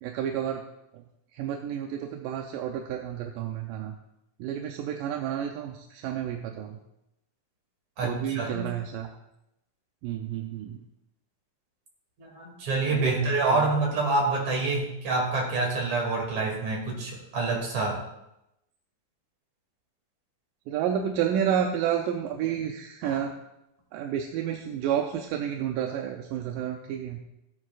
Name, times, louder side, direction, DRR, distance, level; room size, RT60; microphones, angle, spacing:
voice 1, 0.0-0.6 1.3-4.0 4.4-6.8 8.0-9.1 10.0-10.8 12.9-13.3 13.6-13.7 20.7-23.3 23.9-27.2, right 9 dB, 85° right, 3 dB, 2.3 m, -30 dB
voice 2, 8.0-8.7 12.2-18.0 23.0-23.2, right 3 dB, 60° right, 0 dB, 3.8 m, -27 dB
17.5 x 9.4 x 2.5 m, 0.86 s
omnidirectional pair, 3.8 m